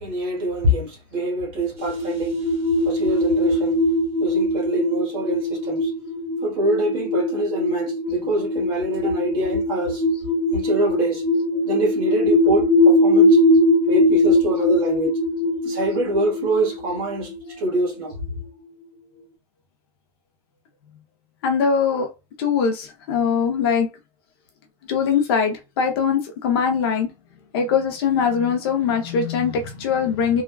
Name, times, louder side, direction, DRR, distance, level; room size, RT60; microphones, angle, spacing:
voice 1, 0.0-2.4 2.8-3.8 4.2-5.9 6.4-10.0 10.5-11.2 11.6-13.4 13.9-15.2 15.6-18.2, right 1 dB, 25° right, 1.0 m, -25 dB
sound 1, 1.8-18.1, left 1 dB, 10° right, 0.5 m, -21 dB
voice 2, 21.4-22.1 22.4-23.9 24.9-27.1 27.5-30.4, left 6 dB, 40° left, 0.5 m, -21 dB
3.3 x 2.2 x 2.2 m
supercardioid pair, 175°, 19 cm